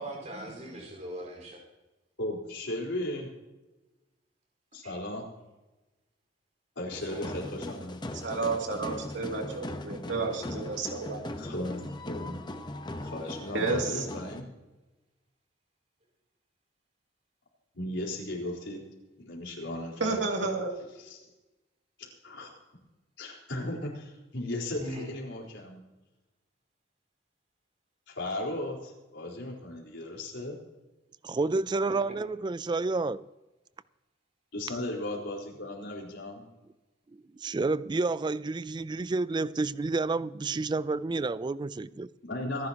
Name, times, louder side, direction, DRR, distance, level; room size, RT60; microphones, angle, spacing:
voice 1, 0.0-1.6 4.8-4.9 7.1-7.3 24.8-25.1, right 1 dB, 40° right, 4.7 m, -40 dB
voice 2, 2.2-3.3 4.7-5.2 6.8-8.0 11.4-12.4 13.0-14.5 17.7-18.8 19.2-20.2 20.8-21.2 22.0-22.5 23.2-25.8 28.1-30.6 34.5-36.5 42.2-42.7, left 1 dB, 80° left, 4.3 m, -36 dB
sound 1, 6.9-14.4, left 1 dB, 25° left, 0.9 m, -39 dB
voice 3, 8.2-11.2 13.5-14.0 20.0-20.7, right 3 dB, 90° right, 2.6 m, -31 dB
voice 4, 31.2-33.2 37.4-42.1, right 3 dB, 25° right, 0.3 m, -30 dB
26.0 x 10.5 x 2.9 m
head